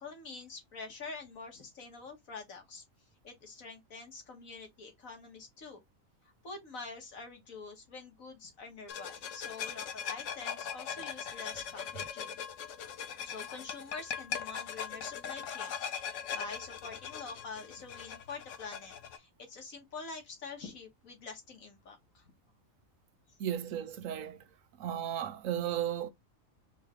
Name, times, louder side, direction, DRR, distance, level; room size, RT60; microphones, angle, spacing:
voice 1, 0.0-2.8 3.2-5.8 6.2-12.4 13.2-22.3, left 4 dB, 85° left, 2.0 m, -46 dB
sound 1, 8.9-19.2, left 8 dB, 70° left, 1.1 m, -40 dB
voice 2, 23.4-24.4 24.8-26.1, right 10 dB, 80° right, 1.1 m, -34 dB
4.5 x 3.2 x 3.6 m
omnidirectional pair, 1.4 m